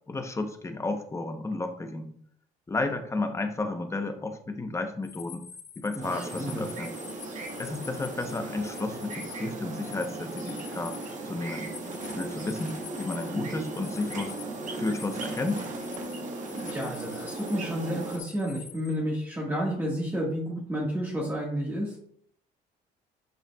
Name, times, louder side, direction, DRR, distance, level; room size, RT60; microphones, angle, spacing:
voice 1, 0.1-2.1 2.7-5.4 5.8-6.9 7.6-11.0 11.2-11.7 12.2-14.3 14.8-15.6, left 2 dB, 15° left, 6 dB, 0.9 m, -32 dB
sound 1, 5.0-9.4 9.6-18.9, left 8 dB, 75° left, 1.3 m, -47 dB
voice 2, 5.9-6.6 13.3-13.4 16.5-22.0, equal, 10° right, -4 dB, 1.7 m, -31 dB
sound 2, 6.0-18.2, right 2 dB, 45° right, 1.5 m, -37 dB
8.9 x 5.6 x 2.4 m, 0.64 s
cardioid pair, 110°, 17 cm